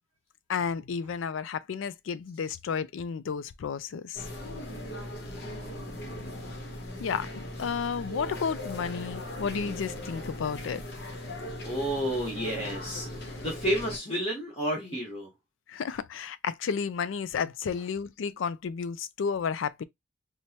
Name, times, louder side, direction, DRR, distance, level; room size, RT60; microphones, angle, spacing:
voice 1, 0.5-4.2 7.0-10.8 15.7-19.8, left 6 dB, 70° left, 0.4 m, -32 dB
sound 1, 4.1-14.0, left 1 dB, 55° left, 0.9 m, -39 dB
voice 2, 5.4-5.9 11.6-15.3, equal, 30° left, 1.2 m, -31 dB
4.5 x 2.1 x 2.8 m
head